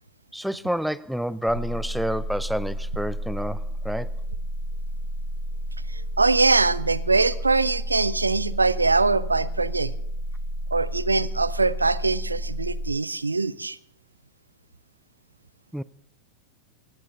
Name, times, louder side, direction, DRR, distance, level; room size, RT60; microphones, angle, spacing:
voice 1, 0.3-4.2 15.7-15.8, equal, ahead, 0.5 m, -29 dB
sound 1, 1.5-12.9, equal, 25° right, 7.7 m, -31 dB
voice 2, 5.9-9.9 10.7-13.8, right 3 dB, 80° right, 0.5 m, -23 dB
18.0 x 16.0 x 3.5 m
figure-of-eight pair, 90°, 0 cm